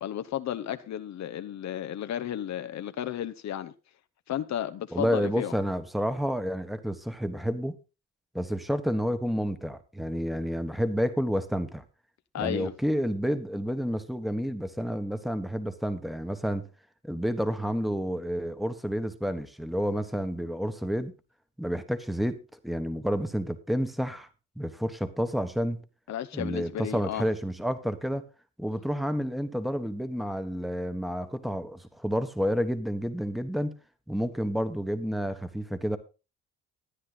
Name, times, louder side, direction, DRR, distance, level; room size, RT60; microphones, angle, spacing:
voice 1, 0.0-3.7 4.3-5.5 12.3-12.7 26.1-27.3, left 10 dB, 65° left, 0.9 m, -33 dB
voice 2, 4.9-7.8 8.3-11.8 12.4-16.7 17.0-21.1 21.6-24.3 24.6-25.8 26.3-28.2 28.6-33.8 34.1-36.0, equal, ahead, 1.4 m, -30 dB
13.5 x 9.3 x 4.0 m
cardioid pair, 90°, 30 cm